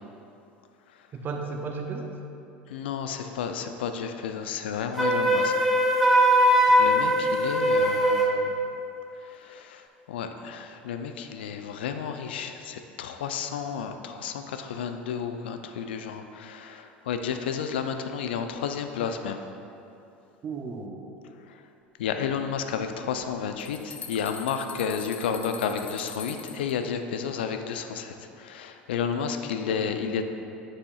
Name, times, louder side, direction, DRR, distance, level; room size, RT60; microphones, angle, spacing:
voice 1, 1.1-2.1 20.4-21.1 29.8-30.2, right 4 dB, 35° right, 3 dB, 0.8 m, -35 dB
voice 2, 2.7-5.7 6.0-6.3 6.8-8.7 9.1-19.4 21.5-21.6 22.0-30.2, left 7 dB, 75° left, 7 dB, 0.4 m, -32 dB
Wind instrument woodwind instrument, 5.0-8.4, equal, 5° right, 0.9 m, -21 dB
sound 1, 23.2-26.7, left 5 dB, 25° left, 0.6 m, -42 dB
8.9 x 6.8 x 2.4 m, 2.8 s
hypercardioid pair, 75°, 6 cm